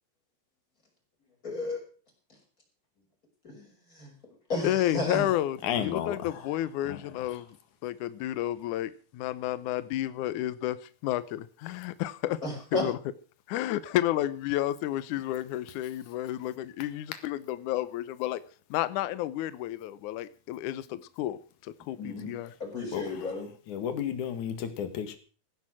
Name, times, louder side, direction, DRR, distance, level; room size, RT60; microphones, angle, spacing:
voice 1, 1.4-1.8 3.4-3.7 3.9-4.1 4.5-5.3 12.4-12.9 22.0-22.3 22.6-23.5, left 2 dB, 20° left, 0 dB, 6.2 m, -33 dB
voice 2, 4.6-7.5 7.8-10.8 11.0-12.4 12.7-13.0 13.5-18.4 18.7-22.5, left 13 dB, 85° left, 15 dB, 1.7 m, -31 dB
voice 3, 5.6-6.4 6.8-7.0 22.9-23.3 23.7-25.2, left 9 dB, 55° left, 9 dB, 2.8 m, -33 dB
16.5 x 10.0 x 6.2 m, 0.39 s
omnidirectional pair, 4.7 m